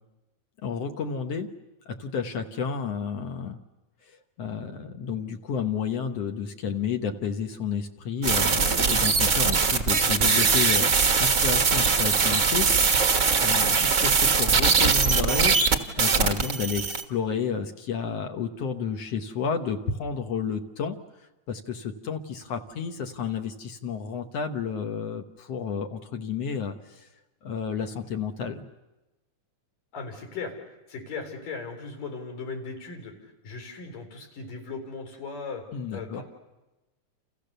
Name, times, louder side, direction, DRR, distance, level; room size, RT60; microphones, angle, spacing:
voice 1, 0.6-1.5 1.9-3.6 4.4-13.0 13.4-15.6 15.9-21.0 21.5-27.1 27.4-28.7 35.7-36.2, left 6 dB, 60° left, 5 dB, 2.1 m, -31 dB
sound 1, 8.2-17.0, right 5 dB, 55° right, 0.8 m, -21 dB
voice 2, 29.9-30.5 30.9-33.1 33.4-35.6 35.9-36.2, left 4 dB, 85° left, 3 dB, 5.7 m, -37 dB
29.5 x 28.5 x 6.8 m, 1.0 s
omnidirectional pair, 3.7 m